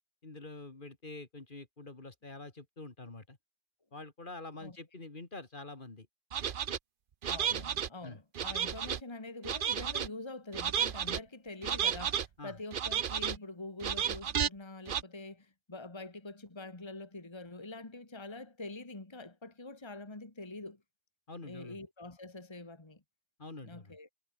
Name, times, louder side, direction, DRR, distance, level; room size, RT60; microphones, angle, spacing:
voice 1, 0.2-3.4 3.9-6.1 7.5-7.6 8.0-8.2 12.4-12.6 21.3-21.8 23.4-24.0, left 2 dB, 50° left, 2.6 m, -46 dB
sound 1, 6.3-6.8 7.2-7.9 8.4-9.0 9.4-10.1 10.5-11.2 11.6-12.3 12.7-13.4 13.8-14.5 14.9-15.0, right 8 dB, 55° right, 0.9 m, -32 dB
voice 2, 7.3-20.8 21.4-23.0 23.6-24.1, left 2 dB, 25° left, 1.9 m, -45 dB
omnidirectional pair, 1.1 m